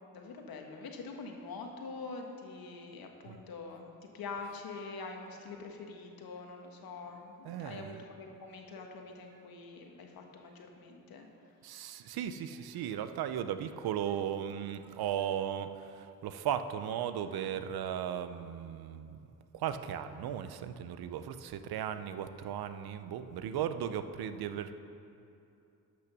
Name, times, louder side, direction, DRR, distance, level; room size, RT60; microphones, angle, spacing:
voice 1, 0.1-11.3, left 4 dB, 70° left, 3 dB, 1.3 m, -45 dB
voice 2, 7.4-8.0 11.6-19.2 19.5-24.7, right 9 dB, 80° right, 10 dB, 0.6 m, -36 dB
12.0 x 6.2 x 6.0 m, 2.7 s
cardioid pair, 100°, 37 cm